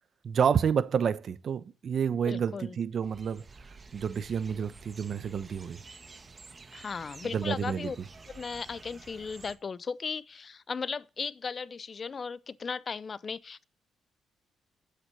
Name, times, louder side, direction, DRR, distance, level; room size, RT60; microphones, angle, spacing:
voice 1, 0.2-3.4 3.9-5.8 7.3-7.9, right 7 dB, 55° right, 1.0 m, -29 dB
voice 2, 2.2-2.8 6.7-8.0 8.3-13.6, left 5 dB, 40° left, 0.6 m, -36 dB
sound 1, 3.0-9.6, right 4 dB, 30° right, 1.4 m, -50 dB
9.4 x 8.1 x 8.9 m
cardioid pair, 90°, 0 cm